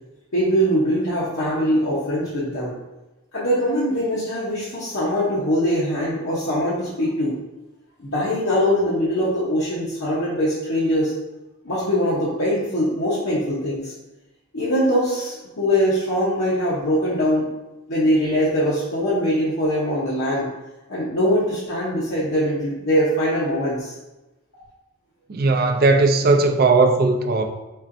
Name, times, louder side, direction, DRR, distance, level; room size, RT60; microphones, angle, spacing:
voice 1, 0.3-2.7 3.3-7.4 8.0-11.1 11.6-13.9 14.5-17.5 17.9-20.5 20.9-23.9, equal, 75° left, 0.9 m, -22 dB
voice 2, 25.3-27.4, right 3 dB, 50° right, 0.4 m, -17 dB
4.3 x 4.2 x 2.6 m
head